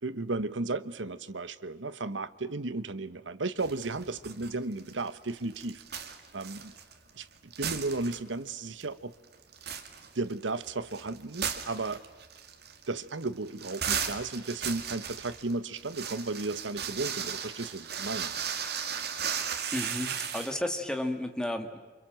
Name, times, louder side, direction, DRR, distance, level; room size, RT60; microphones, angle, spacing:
voice 1, 0.0-6.7 7.2-9.1 10.1-12.0 12.9-18.3, right 3 dB, 85° right, 1.1 m, -34 dB
sound 1, 3.6-4.5 4.8-7.2 7.5-8.5 8.8-8.9 9.3-20.5, right 7 dB, 60° right, 2.5 m, -36 dB
voice 2, 19.7-21.9, left 1 dB, 5° left, 2.1 m, -33 dB
29.0 x 26.0 x 7.6 m
head